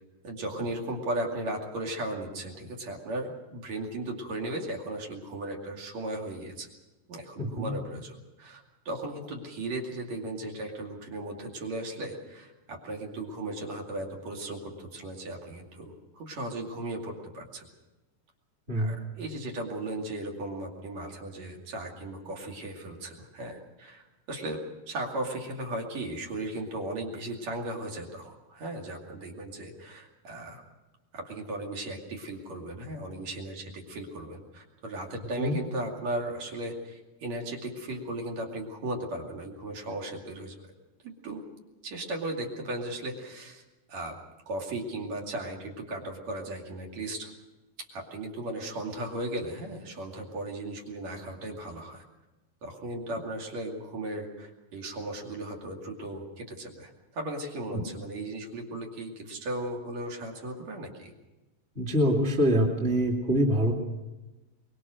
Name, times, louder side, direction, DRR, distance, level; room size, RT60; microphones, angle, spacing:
voice 1, 0.2-6.7 7.1-17.7 18.7-30.6 31.1-40.7 41.0-41.4 41.8-43.6 43.9-44.2 44.5-47.3 47.8-52.0 52.6-61.1, right 1 dB, 65° right, 0 dB, 3.8 m, -36 dB
voice 2, 7.4-7.8 18.7-19.0 35.4-35.6 57.7-57.9 61.7-63.7, equal, 20° right, -2 dB, 2.7 m, -25 dB
23.5 x 22.0 x 6.4 m, 1.1 s
omnidirectional pair, 3.4 m